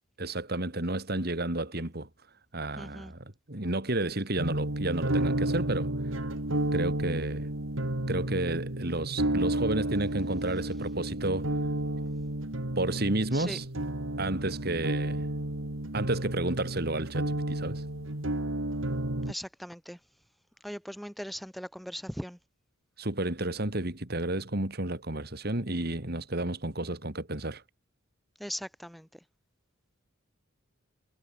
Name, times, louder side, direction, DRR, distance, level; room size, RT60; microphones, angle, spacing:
voice 1, 0.2-2.1 2.5-5.9 6.7-7.5 8.1-11.5 12.8-13.7 14.2-15.3 15.9-17.8 23.0-27.6, right 2 dB, 50° right, 2.6 m, -31 dB
voice 2, 2.8-3.1 13.3-13.6 19.3-20.0 20.6-22.4 28.4-29.1, equal, ahead, 3.3 m, -39 dB
sound 1, 4.4-19.3, right 1 dB, 75° right, 2.6 m, -31 dB
head